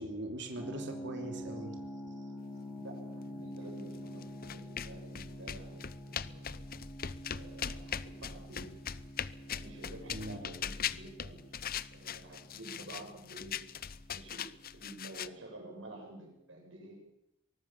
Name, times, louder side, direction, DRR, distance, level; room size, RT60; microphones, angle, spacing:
voice 1, 0.0-1.8 10.1-10.4, right 1 dB, 65° right, 3 dB, 3.0 m, -41 dB
sound 1, 0.6-15.3, equal, 10° left, 5.5 m, -47 dB
voice 2, 2.8-5.8 6.1-6.7 7.3-8.7 9.4-11.4 11.9-13.5 14.1-14.5 14.7-17.0, right 1 dB, 85° right, 1 dB, 7.7 m, -50 dB
sound 2, 4.2-15.3, left 8 dB, 50° left, 0.7 m, -40 dB
24.5 x 19.0 x 7.4 m, 0.86 s
head